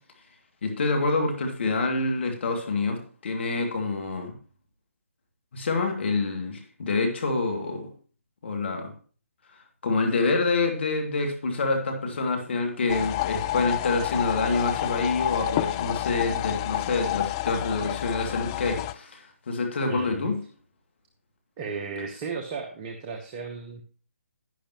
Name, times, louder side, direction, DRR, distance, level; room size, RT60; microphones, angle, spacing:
voice 1, 0.6-4.4 5.5-7.9 8.4-8.9 9.8-20.4, left 3 dB, 50° left, 2 dB, 2.5 m, -27 dB
sound 1, 12.9-18.9, left 17 dB, 20° left, 0.4 m, -29 dB
voice 2, 19.9-20.3 21.6-23.8, right 5 dB, 25° right, 3 dB, 1.0 m, -35 dB
11.0 x 10.0 x 3.0 m, 0.40 s
figure-of-eight pair, 145°, 8 cm